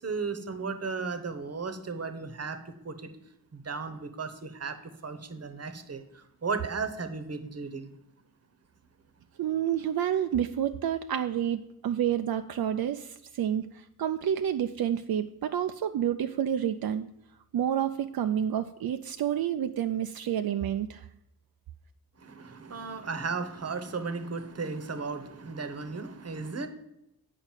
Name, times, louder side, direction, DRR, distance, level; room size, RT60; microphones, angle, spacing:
voice 1, 0.0-2.6 2.8-3.0 3.5-4.8 5.0-6.0 6.4-7.9 22.2-26.7, right 4 dB, 45° right, 9 dB, 1.0 m, -35 dB
voice 2, 9.4-13.7 14.0-17.1 17.5-21.1, right 10 dB, 75° right, 8 dB, 0.5 m, -29 dB
8.9 x 5.1 x 7.3 m, 0.85 s
wide cardioid pair, 140°, 36 cm